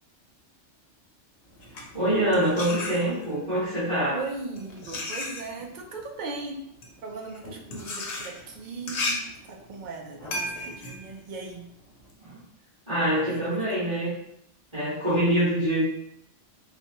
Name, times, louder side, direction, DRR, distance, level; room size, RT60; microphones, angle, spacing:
sound 1, 1.5-3.5 4.2-12.1, left 2 dB, 70° left, 1.0 m, -35 dB
voice 1, 1.9-4.2 12.2-12.4 12.9-14.1 14.7-15.8, right 1 dB, 25° right, -14 dB, 1.4 m, -25 dB
voice 2, 4.1-6.7 7.0-9.2 9.5-11.7 13.3-13.6, right 3 dB, 60° right, 1 dB, 0.4 m, -38 dB
4.0 x 2.2 x 2.9 m, 0.76 s
omnidirectional pair, 1.3 m